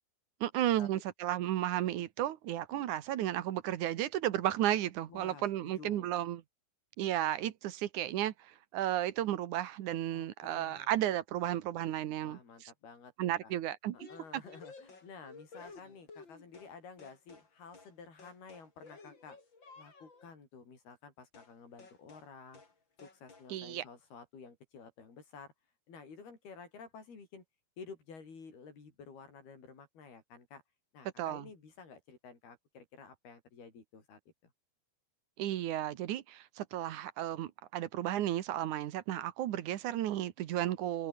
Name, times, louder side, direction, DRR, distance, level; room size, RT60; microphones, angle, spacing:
voice 1, 0.4-6.4 7.0-12.7 13.2-14.1 23.5-23.8 31.2-31.5 35.4-41.1, right 12 dB, 65° right, 2.2 m, -33 dB
voice 2, 5.1-6.1 10.1-10.9 12.2-13.6 14.1-19.4 19.8-22.6 23.0-25.5 25.9-27.4 27.8-30.6 30.9-34.5, left 5 dB, 75° left, 8.4 m, -52 dB
sound 1, 14.0-16.7 17.0-17.5 17.7-17.9 18.2-20.3 21.3-21.5 21.8-22.3 22.5-22.7 23.0-23.5, left 4 dB, 30° left, 4.4 m, -54 dB
open air
omnidirectional pair, 4.5 m